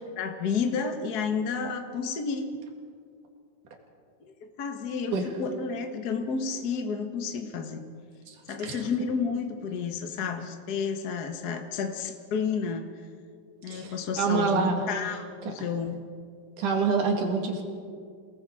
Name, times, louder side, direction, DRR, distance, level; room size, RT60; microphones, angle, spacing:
voice 1, 0.2-2.5 4.2-7.8 8.5-12.9 13.6-16.0, left 5 dB, 60° left, 4 dB, 1.0 m, -31 dB
voice 2, 13.7-14.8 15.5-15.6 16.6-17.6, right 5 dB, 65° right, 2 dB, 3.6 m, -26 dB
29.0 x 19.0 x 4.9 m, 2.1 s
omnidirectional pair, 3.9 m